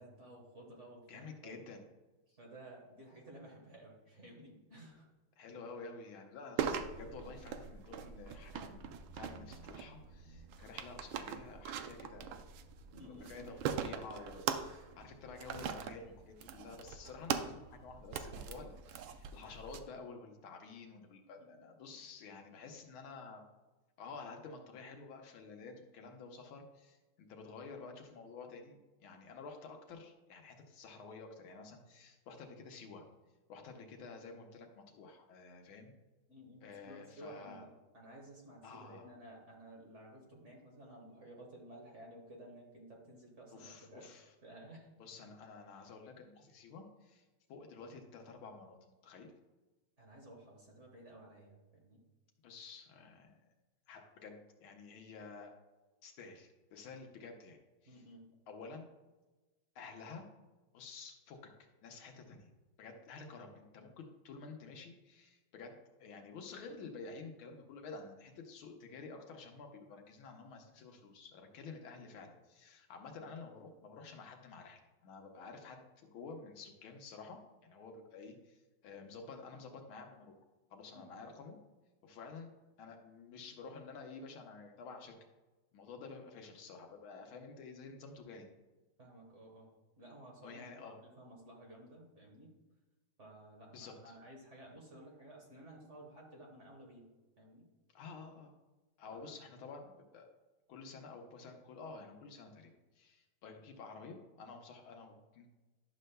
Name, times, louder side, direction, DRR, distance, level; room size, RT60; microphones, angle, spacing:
voice 1, 0.0-1.6 2.3-5.1 12.9-13.5 21.4-21.9 36.3-44.9 50.0-52.0 57.8-58.3 80.9-81.1 89.0-89.7 90.0-92.5 93.2-97.1 97.4-97.6 99.1-99.3, right 1 dB, 40° right, -1 dB, 1.5 m, -54 dB
voice 2, 1.1-1.8 5.4-12.5 13.1-23.4 24.0-33.0 33.5-35.9 36.6-37.7 38.6-39.1 43.5-44.3 45.0-49.3 52.4-53.4 53.9-55.6 56.0-58.0 58.5-58.9 59.8-60.2 60.7-62.5 62.8-80.3 80.7-81.6 82.0-82.5 82.8-85.2 85.7-88.5 90.4-91.0 93.7-94.2 97.9-98.5 99.0-100.3 100.7-105.5, left 4 dB, 80° left, 3 dB, 1.7 m, -51 dB
sound 1, 6.6-19.8, right 8 dB, 75° right, 1.3 m, -42 dB
11.0 x 6.4 x 2.2 m, 1.1 s
omnidirectional pair, 2.3 m